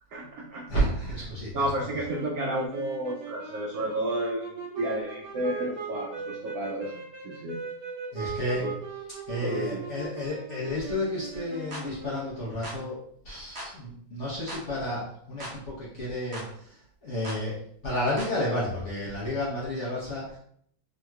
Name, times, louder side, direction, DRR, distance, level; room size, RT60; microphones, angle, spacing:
voice 1, 0.1-0.9 1.5-7.6 8.6-8.7 9.4-9.8, right 1 dB, 85° right, -1 dB, 0.7 m, -32 dB
voice 2, 0.7-1.5 8.1-8.7 9.3-13.0 13.2-15.0 15.3-17.6 17.8-20.4, left 1 dB, 55° left, -7 dB, 0.8 m, -31 dB
sound 1, 2.0-12.5, right 4 dB, 70° right, 1.4 m, -39 dB
sound 2, 11.7-11.9 12.6-12.8 13.5-13.7 14.5-14.7 15.4-15.6 16.3-16.5 17.2-17.4 18.2-18.4, equal, 50° right, 0.8 m, -39 dB
3.5 x 2.8 x 2.2 m, 0.65 s
omnidirectional pair, 2.1 m